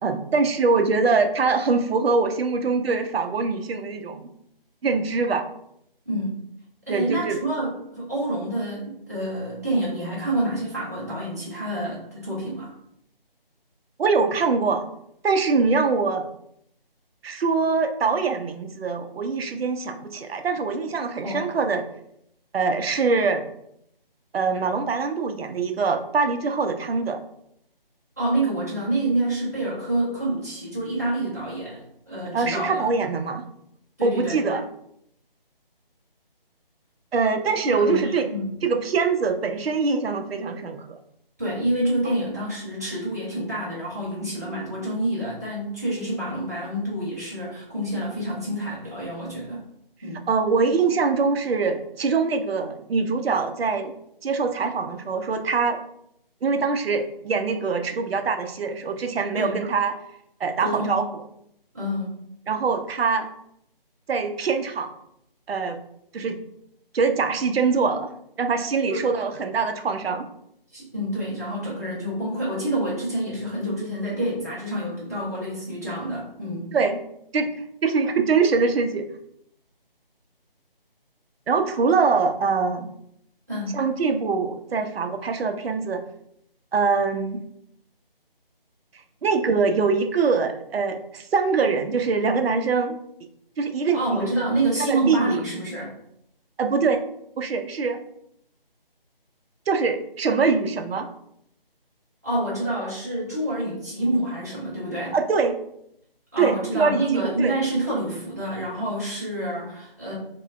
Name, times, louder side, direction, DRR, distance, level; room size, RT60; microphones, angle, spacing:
voice 1, 0.0-4.3 4.8-5.5 6.9-7.4 14.0-14.9 15.2-16.3 17.2-21.8 22.5-23.5 24.3-27.2 32.3-33.5 34.0-34.7 37.1-38.3 38.6-41.0 50.3-53.9 54.2-55.8 56.4-60.0 60.4-61.2 62.5-63.3 64.1-64.9 65.5-65.8 66.1-66.4 66.9-68.1 68.4-70.3 76.7-77.0 77.3-77.5 77.8-79.1 81.5-82.9 83.7-86.0 86.7-87.4 89.2-93.0 93.6-94.3 94.8-95.4 96.6-97.0 97.4-98.0 99.7-101.1 105.1-105.6 106.4-107.5, right 4 dB, 90° right, 6 dB, 0.5 m, -23 dB
voice 2, 6.1-6.4 6.9-12.7 21.2-21.4 28.2-32.9 34.0-34.4 37.6-38.6 41.4-49.7 50.0-50.2 59.4-59.6 60.6-61.0 61.7-62.1 68.9-69.1 70.7-76.7 83.5-83.8 93.9-95.9 102.2-105.1 106.3-110.1, right 1 dB, 20° right, -9 dB, 0.5 m, -27 dB
3.2 x 2.1 x 2.4 m, 0.74 s
figure-of-eight pair, 165°, 29 cm